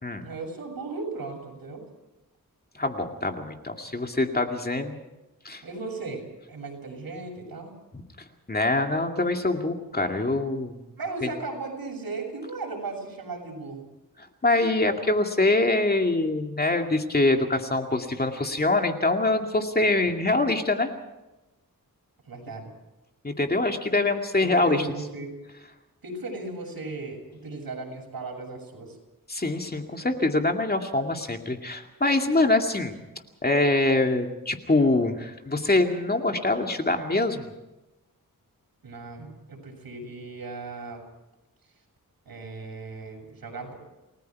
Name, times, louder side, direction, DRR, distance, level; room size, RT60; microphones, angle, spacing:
voice 1, 0.2-1.8 5.6-7.7 11.0-13.9 22.3-22.7 24.4-25.3 26.0-29.0 38.8-41.0 42.3-43.8, right 3 dB, 80° right, 1 dB, 7.5 m, -36 dB
voice 2, 2.7-5.0 5.4-5.6 7.9-8.0 8.5-10.8 14.4-20.9 23.2-24.9 29.3-33.0 33.4-37.5, left 2 dB, 25° left, 4 dB, 2.3 m, -24 dB
29.5 x 19.5 x 4.8 m, 1.0 s
wide cardioid pair, 120°, 35 cm